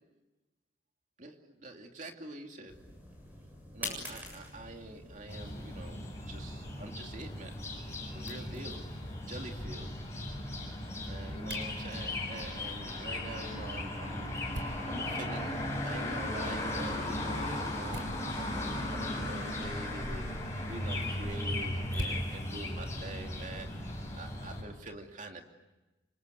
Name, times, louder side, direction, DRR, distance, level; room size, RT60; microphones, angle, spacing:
voice 1, 1.2-3.0 3.7-6.0 6.3-7.6 8.1-9.9 11.0-18.1 18.3-20.4 20.7-25.5, right 2 dB, 40° right, 3 dB, 2.7 m, -46 dB
sound 1, 2.7-9.6, left 1 dB, 10° right, 7.5 m, -47 dB
sound 2, 5.3-24.6, left 1 dB, 15° left, 7.2 m, -37 dB
sound 3, 8.9-23.8, right 1 dB, 85° right, 3.7 m, -50 dB
28.5 x 25.0 x 8.2 m, 1.1 s
head